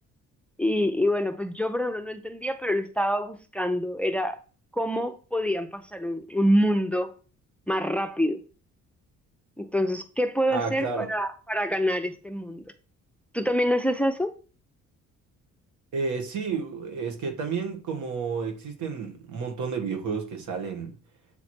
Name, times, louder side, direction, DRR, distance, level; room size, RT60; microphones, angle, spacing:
voice 1, 0.6-4.4 4.7-7.1 7.7-8.4 9.6-12.6 13.3-14.3, equal, 5° left, 0.6 m, -26 dB
voice 2, 10.5-11.1 15.9-20.9, right 5 dB, 75° right, 1.6 m, -31 dB
7.9 x 3.2 x 4.4 m
cardioid pair, 90°, 30 cm